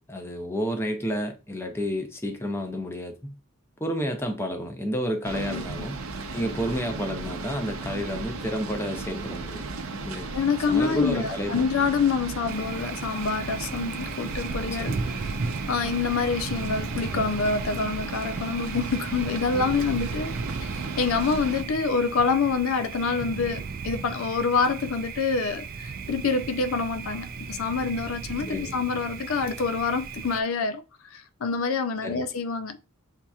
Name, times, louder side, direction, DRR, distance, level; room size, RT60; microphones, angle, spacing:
voice 1, 0.1-3.4 3.8-6.0 6.3-9.7 10.0-10.3 10.7-11.7 14.6-15.0 19.5-19.7 28.5-28.8 32.0-32.3, equal, 10° left, 0.5 m, -30 dB
sound 1, 5.2-21.6, right 3 dB, 75° right, 0.7 m, -35 dB
voice 2, 5.3-5.6 10.3-15.3 15.7-32.8, left 5 dB, 70° left, 0.4 m, -27 dB
Thunder, 12.5-30.4, right 4 dB, 40° right, 0.3 m, -36 dB
7.2 x 2.8 x 2.3 m
head